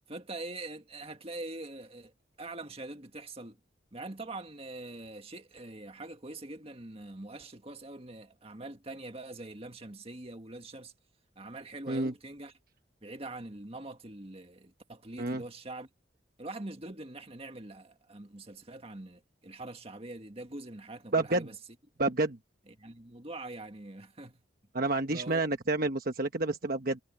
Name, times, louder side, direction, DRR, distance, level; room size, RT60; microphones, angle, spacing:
voice 1, 0.0-2.1 2.4-3.6 3.9-10.9 11.4-12.5 13.0-15.9 16.4-21.6 22.7-24.4 25.1-25.5, right 2 dB, 30° right, 1.9 m, -43 dB
voice 2, 21.1-21.5 22.0-22.4 24.7-27.0, right 2 dB, 50° right, 1.2 m, -29 dB
head